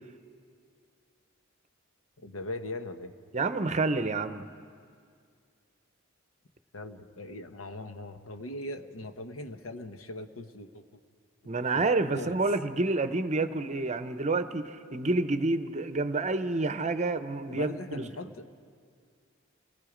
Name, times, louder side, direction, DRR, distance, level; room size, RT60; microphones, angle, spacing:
voice 1, 2.2-3.1 6.7-10.8 11.7-11.8 12.1-12.4 17.5-18.6, left 2 dB, 80° left, 8 dB, 1.0 m, -40 dB
voice 2, 3.3-4.4 11.5-18.0, right 3 dB, 35° right, 10 dB, 0.7 m, -28 dB
29.0 x 19.0 x 5.1 m, 2.2 s
head